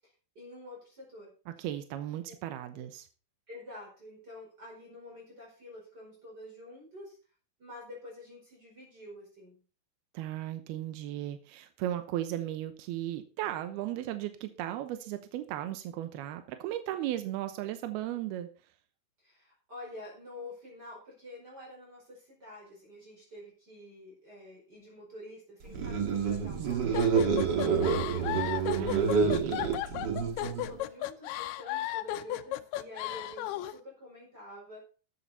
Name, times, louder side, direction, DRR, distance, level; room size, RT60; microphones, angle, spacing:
voice 1, 0.4-1.3 2.3-2.4 2.7-2.9 3.5-7.2 7.6-9.6 19.2-29.4 30.3-34.8, left 1 dB, 25° right, -3 dB, 5.2 m, -48 dB
voice 2, 1.5-3.1 10.1-18.5 26.5-26.9 28.7-29.7, right 13 dB, 85° right, 9 dB, 2.9 m, -36 dB
sound 1, 25.7-30.8, right 6 dB, 45° right, 1.5 m, -28 dB
sound 2, 26.9-33.8, left 14 dB, 90° left, 2.7 m, -35 dB
13.5 x 9.8 x 4.1 m, 0.36 s
omnidirectional pair, 4.4 m